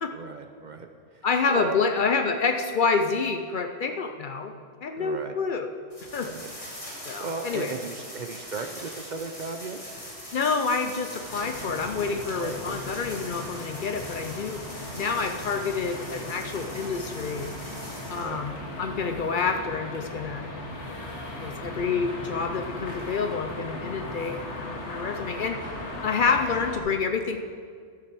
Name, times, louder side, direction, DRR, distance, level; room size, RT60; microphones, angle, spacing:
voice 1, 0.1-1.8 5.0-5.3 6.2-6.5 7.2-9.8 12.1-12.8 18.1-18.5, right 4 dB, 50° right, 6 dB, 0.6 m, -37 dB
voice 2, 1.2-4.5 4.8-5.7 6.1-6.3 7.1-7.7 10.3-14.6 14.9-17.5 18.1-18.5 18.8-20.5 21.4-25.6 26.0-27.4, left 5 dB, 55° left, 6 dB, 0.7 m, -28 dB
sound 1, 5.9-18.3, equal, 30° left, 2.7 m, -42 dB
sound 2, 11.2-26.8, left 1 dB, 80° left, 1.9 m, -38 dB
13.0 x 6.0 x 6.0 m, 2.1 s
omnidirectional pair, 1.2 m